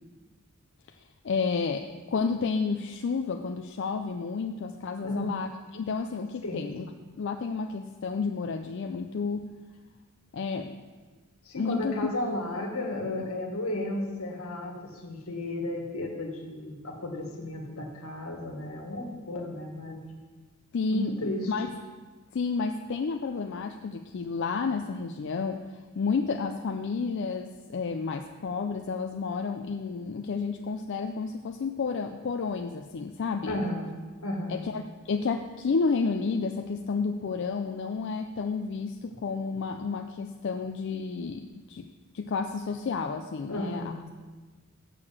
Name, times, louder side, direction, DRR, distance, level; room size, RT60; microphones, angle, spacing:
voice 1, 1.2-6.9 7.1-9.5 10.3-10.8 11.6-12.0 20.7-21.7 22.3-25.7 25.9-33.6 34.5-41.9 42.1-43.8, left 4 dB, 55° left, 5 dB, 0.4 m, -31 dB
voice 2, 5.0-5.3 6.4-6.7 11.4-20.0 20.9-21.5 33.4-33.9 34.2-34.6 43.5-44.1, left 1 dB, 80° left, 1 dB, 1.6 m, -34 dB
6.8 x 6.5 x 7.1 m, 1.4 s
head